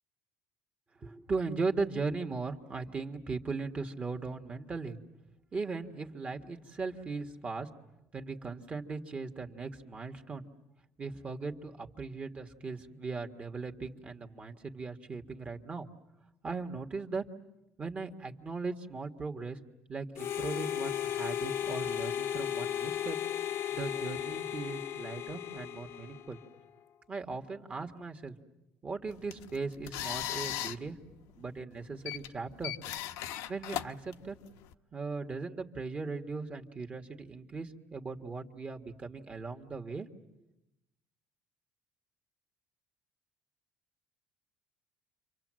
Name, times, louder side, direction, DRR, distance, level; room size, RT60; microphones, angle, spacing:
voice 1, 1.0-5.0 5.5-7.7 8.1-10.5 11.0-15.9 16.4-17.2 17.8-19.6 19.9-23.2 23.7-26.4 27.1-28.4 28.8-31.0 31.4-32.7 33.5-34.4 34.9-40.1, right 4 dB, 25° right, 4 dB, 1.7 m, -38 dB
Harmonica, 20.1-26.5, left 10 dB, 50° left, 0.9 m, -35 dB
sound 1, 29.1-34.7, left 12 dB, 85° left, 1.0 m, -39 dB
30.0 x 25.0 x 7.7 m, 0.94 s
cardioid pair, 125°, 5 cm